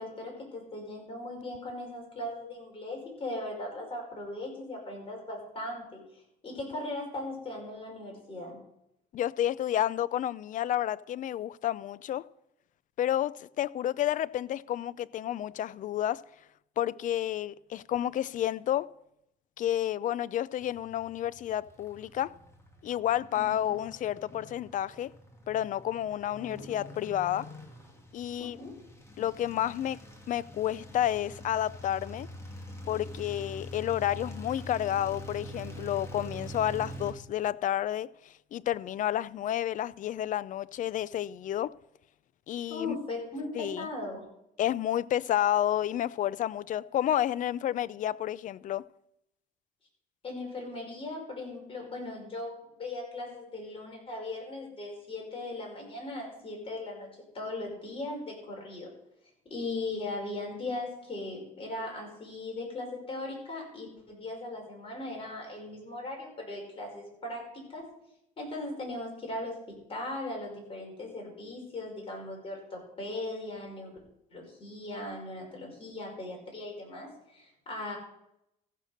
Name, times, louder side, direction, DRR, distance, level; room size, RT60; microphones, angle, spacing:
voice 1, 0.0-8.6 23.3-23.8 26.4-26.7 28.4-28.7 42.7-44.3 50.2-57.1 57.3-58.9 59.5-67.4 67.7-67.9 68.4-74.0 74.3-78.0, left 2 dB, 35° left, 5.4 m, -38 dB
voice 2, 9.1-12.3 13.0-16.2 16.8-18.9 19.6-22.3 22.8-25.1 25.5-27.5 28.1-28.6 29.2-30.0 30.3-32.3 32.9-41.7 42.5-43.0 43.5-43.9 44.6-48.8, left 11 dB, 50° left, 0.4 m, -30 dB
sound 1, 20.6-37.1, equal, 15° left, 2.2 m, -45 dB
14.5 x 6.4 x 6.5 m
cardioid pair, 110°, 17 cm